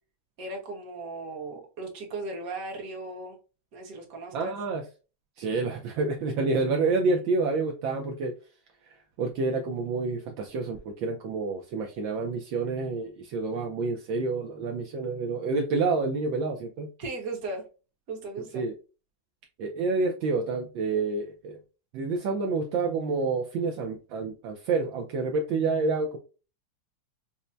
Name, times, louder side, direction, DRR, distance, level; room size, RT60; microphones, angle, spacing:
voice 1, 0.4-3.4 3.7-4.5 17.0-17.6 18.1-18.6, right 2 dB, 50° right, 0 dB, 1.4 m, -37 dB
voice 2, 4.3-4.8 5.4-8.3 9.2-16.9 18.5-18.7 19.6-21.6 21.9-26.2, right 3 dB, 75° right, 2 dB, 1.3 m, -28 dB
5.5 x 2.1 x 2.5 m, 0.33 s
omnidirectional pair, 2.2 m